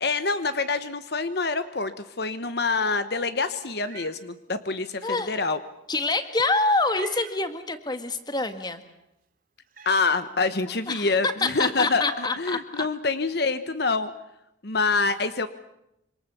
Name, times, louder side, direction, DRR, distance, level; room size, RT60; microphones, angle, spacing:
voice 1, 0.0-5.6 9.8-14.1 14.6-15.5, left 4 dB, 55° left, 11 dB, 1.1 m, -26 dB
Meow, 3.6-4.2 4.7-4.8 6.8-7.4 9.0-9.1 9.7-10.0, right 9 dB, 45° right, 2.5 m, -44 dB
voice 2, 5.9-8.8 10.9-11.1 11.4-12.8, left 3 dB, 20° left, 8 dB, 1.8 m, -26 dB
26.5 x 26.0 x 7.0 m, 0.85 s
head